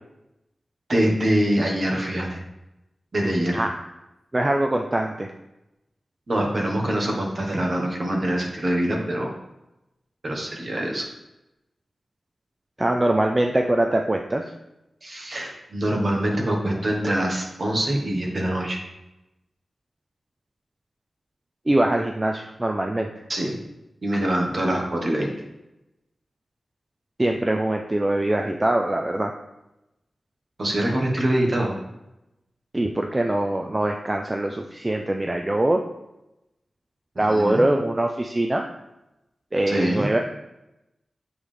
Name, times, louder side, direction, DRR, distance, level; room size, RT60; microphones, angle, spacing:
voice 1, 0.9-2.4 3.1-3.7 6.3-9.3 10.2-11.1 15.0-18.8 23.3-23.6 24.0-25.3 30.6-31.7 37.3-37.6 39.7-40.1, right 1 dB, 45° right, 0 dB, 1.3 m, -24 dB
voice 2, 4.3-5.3 12.8-14.5 21.7-23.1 27.2-29.3 32.7-35.8 37.2-38.7 39.5-40.2, right 1 dB, 20° right, 4 dB, 0.4 m, -23 dB
7.5 x 4.7 x 3.4 m, 0.94 s
wide cardioid pair, 105°, 0 cm